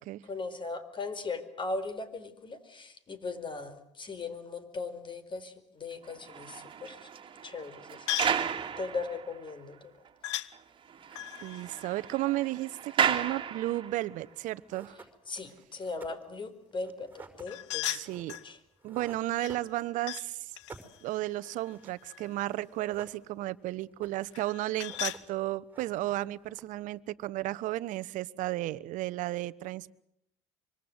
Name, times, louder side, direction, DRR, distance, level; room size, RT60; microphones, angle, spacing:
voice 1, 0.3-7.0 7.4-8.1 8.8-9.8 15.3-17.1 17.4-18.0 18.4-18.6, left 3 dB, 30° left, 4.6 m, -38 dB
sound 1, 6.0-9.5 10.0-10.1 10.5-10.6 10.9-14.1, right 7 dB, 35° right, 2.6 m, -34 dB
sound 2, 8.1-8.5 10.2-10.5 11.1-12.9 17.5-18.5 19.4-20.3 20.6-22.5 24.3-25.2, left 14 dB, 80° left, 1.1 m, -38 dB
voice 2, 11.4-15.0 17.8-18.4 18.8-20.5 21.0-29.9, right 16 dB, 60° right, 1.1 m, -33 dB
sound 3, 14.3-14.4 14.7-20.2 20.4-22.1 22.3-22.4 22.6-23.6 23.8-24.4 24.7-25.4 25.7-26.9, right 3 dB, 15° right, 5.4 m, -52 dB
25.5 x 24.0 x 8.0 m
hypercardioid pair, 70°, 15 cm